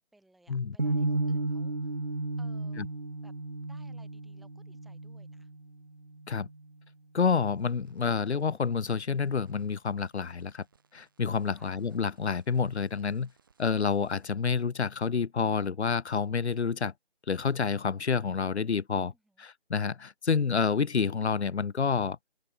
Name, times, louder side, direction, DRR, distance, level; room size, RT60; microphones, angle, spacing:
voice 1, 0.0-1.9 2.4-2.8 3.2-3.3 3.7-5.5 11.5-11.7 19.1-19.4, right 2 dB, ahead, 3.1 m, -62 dB
sound 1, 0.8-6.9, right 2 dB, 45° right, 0.9 m, -34 dB
voice 2, 7.1-10.6 10.9-13.3 13.6-16.9 17.3-19.1 19.4-22.2, left 5 dB, 80° left, 0.6 m, -28 dB
sound 2, 7.5-14.3, right 6 dB, 20° right, 6.2 m, -67 dB
open air
figure-of-eight pair, 165°, 33 cm